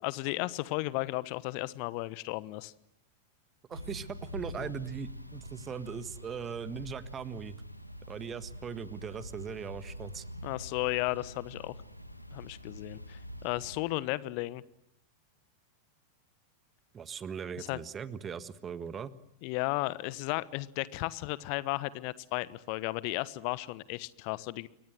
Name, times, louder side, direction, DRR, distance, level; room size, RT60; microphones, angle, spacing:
voice 1, 0.0-2.7 4.6-4.7 10.4-11.8 12.3-14.6 17.6-17.8 19.4-24.7, left 20 dB, 45° left, 18 dB, 1.2 m, -34 dB
sound 1, 3.7-13.8, equal, 90° left, 2.0 m, -45 dB
voice 2, 3.7-7.6 8.1-10.2 16.9-19.1, right 7 dB, 20° right, 14 dB, 1.6 m, -39 dB
29.5 x 23.0 x 7.8 m, 0.81 s
figure-of-eight pair, 90°, 0 cm